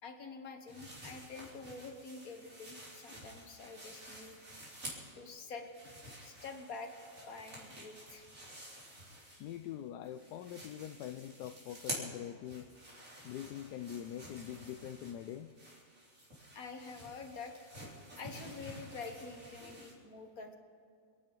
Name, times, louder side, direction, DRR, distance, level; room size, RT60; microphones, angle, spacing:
voice 1, 0.0-4.4 5.1-5.7 6.2-8.3 16.6-17.5 18.2-20.5, left 4 dB, 55° left, 5 dB, 1.9 m, -47 dB
sound 1, 0.7-5.2 5.6-9.7 10.0-19.9, right 1 dB, 45° right, 4.2 m, -50 dB
voice 2, 9.3-12.7 13.2-15.5 18.1-18.2, left 10 dB, 75° left, 9 dB, 1.1 m, -44 dB
27.0 x 9.9 x 5.2 m, 2.4 s
omnidirectional pair, 1.9 m